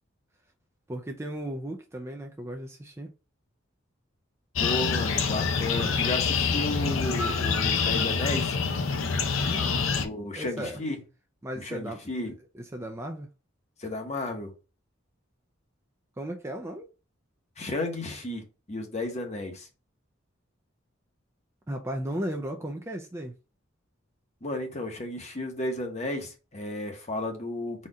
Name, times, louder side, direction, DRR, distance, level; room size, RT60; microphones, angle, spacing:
voice 1, 0.9-3.1 9.4-9.8 10.4-10.8 11.4-13.3 16.2-16.9 21.7-23.3, right 1 dB, 15° right, 0.5 m, -36 dB
sound 1, 4.6-10.1, left 5 dB, 75° left, 0.6 m, -26 dB
voice 2, 4.6-8.6 9.9-11.0 11.6-12.3 13.8-14.5 17.6-18.4 18.7-19.7 24.4-27.9, left 2 dB, 35° left, 1.0 m, -33 dB
4.2 x 2.5 x 4.8 m
head